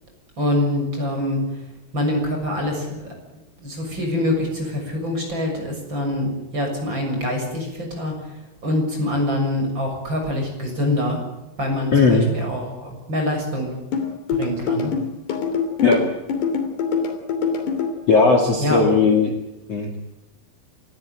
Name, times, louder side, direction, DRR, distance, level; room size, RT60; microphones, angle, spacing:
voice 1, 0.4-1.4 1.9-3.1 3.6-8.4 8.6-11.2 11.6-13.8 14.3-14.9 18.6-18.9, left 1 dB, 25° right, 2 dB, 7.3 m, -25 dB
voice 2, 11.9-12.3 15.8-16.0 18.1-19.3 19.7-19.9, left 4 dB, 40° left, 2 dB, 2.8 m, -17 dB
sound 1, 13.9-17.9, left 6 dB, 70° left, 5.1 m, -24 dB
29.5 x 14.5 x 9.0 m, 1.0 s
omnidirectional pair, 5.1 m